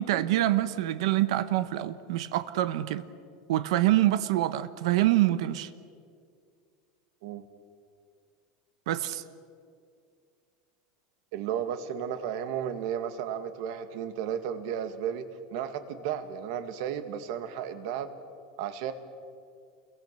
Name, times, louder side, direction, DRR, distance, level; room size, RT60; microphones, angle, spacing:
voice 1, 0.0-3.1 3.5-5.7 8.9-9.2, right 14 dB, 75° right, 13 dB, 1.1 m, -26 dB
voice 2, 11.3-15.3 15.5-18.1 18.6-18.9, right 9 dB, 55° right, 9 dB, 2.0 m, -33 dB
30.0 x 22.5 x 6.9 m, 2.2 s
supercardioid pair, 175°, 3 cm